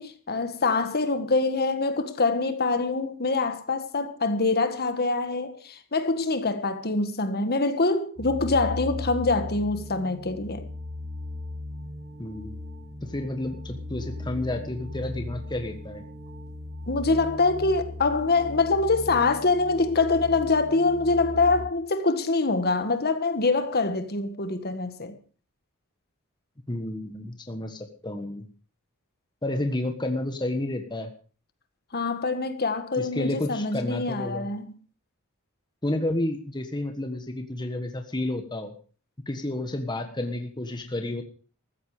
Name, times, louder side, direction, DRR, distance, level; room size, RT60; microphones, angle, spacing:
voice 1, 0.0-10.7 16.9-25.1 31.9-34.7, left 3 dB, 45° left, 1.7 m, -25 dB
sound 1, 8.2-21.7, left 2 dB, 60° right, 5.3 m, -37 dB
voice 2, 12.2-12.5 13.0-16.0 26.7-28.5 29.4-31.1 33.0-34.5 35.8-38.7 39.3-41.2, left 1 dB, 20° left, 1.4 m, -31 dB
14.5 x 14.5 x 5.0 m
head